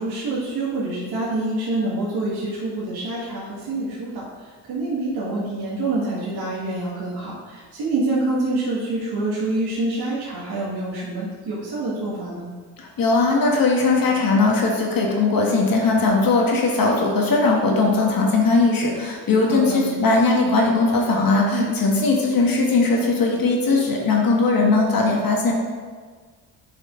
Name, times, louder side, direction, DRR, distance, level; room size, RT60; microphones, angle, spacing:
voice 1, 0.0-12.5 19.4-19.9 21.5-21.7, right 2 dB, 65° right, -7 dB, 1.9 m, -26 dB
voice 2, 12.8-25.5, left 3 dB, 55° left, 0 dB, 1.8 m, -19 dB
8.2 x 5.0 x 3.9 m, 1.5 s
cardioid pair, 80°, 41 cm